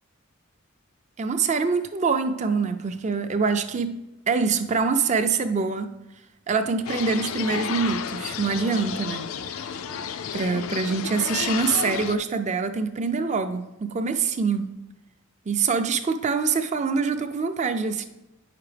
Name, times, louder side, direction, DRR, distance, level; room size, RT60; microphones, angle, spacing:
voice 1, 1.2-4.0 4.3-5.9 6.5-9.7 10.3-14.7 15.5-18.0, right 5 dB, 35° right, 0.4 m, -25 dB
sound 1, 6.9-12.2, left 7 dB, 75° left, 0.4 m, -31 dB
9.0 x 5.8 x 3.3 m
head